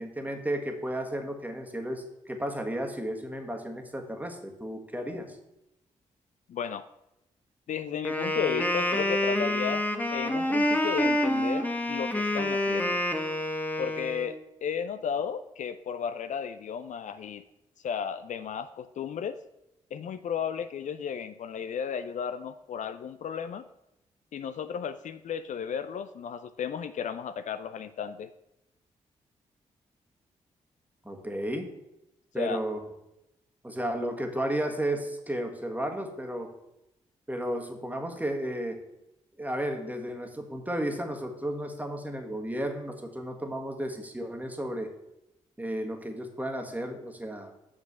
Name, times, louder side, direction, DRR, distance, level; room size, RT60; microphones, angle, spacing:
voice 1, 0.0-5.4 31.0-31.7 32.3-32.9 33.6-36.5 37.3-38.8 39.4-44.9 45.6-47.5, right 1 dB, 10° right, 3 dB, 1.5 m, -33 dB
voice 2, 6.5-6.9 7.7-13.0 13.8-17.4 17.8-19.4 19.9-23.6 24.3-28.3 32.4-32.6, left 7 dB, 60° left, 12 dB, 0.4 m, -34 dB
Wind instrument woodwind instrument, 8.0-14.3, left 1 dB, 10° left, 1.1 m, -27 dB
6.0 x 5.2 x 6.8 m, 0.88 s
hypercardioid pair, 40°, 14 cm